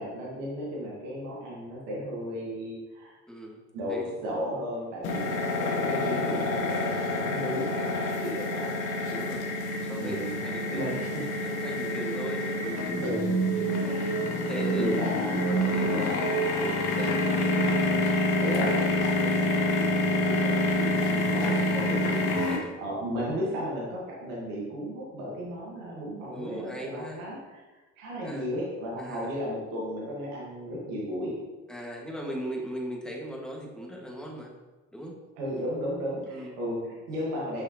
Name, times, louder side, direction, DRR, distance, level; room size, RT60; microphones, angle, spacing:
voice 1, 0.0-3.2 3.7-8.7 9.9-11.3 12.9-13.3 13.8-14.1 14.8-15.6 15.8-16.2 16.5-17.2 17.6-22.3 22.8-27.6 28.0-31.3 35.4-37.6, equal, 80° right, -5 dB, 1.7 m, -35 dB
voice 2, 3.3-3.6 3.9-4.1 5.2-5.5 9.1-9.5 9.8-10.8 11.1-13.1 13.5-14.0 14.4-16.3 16.6-17.1 17.5-17.6 22.1-22.7 26.3-27.2 28.2-28.5 29.0-29.4 31.7-34.5 34.9-35.2 36.3-36.5, right 1 dB, ahead, -1 dB, 1.8 m, -38 dB
sound 1, 5.0-22.6, left 1 dB, 75° left, 1.1 m, -27 dB
6.6 x 5.7 x 3.0 m, 1.2 s
hypercardioid pair, 55°, 38 cm